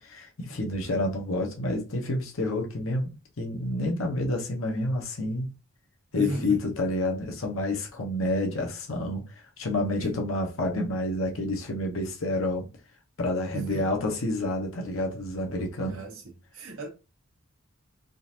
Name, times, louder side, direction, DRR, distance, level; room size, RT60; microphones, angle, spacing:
voice 1, 0.0-5.5 6.1-12.7 13.2-16.0, left 1 dB, 75° left, 0.9 m, -29 dB
voice 2, 6.1-6.6 10.0-10.2 13.5-13.9 15.8-16.2 16.5-16.9, right 1 dB, 85° right, 1.0 m, -35 dB
3.7 x 2.5 x 2.8 m
head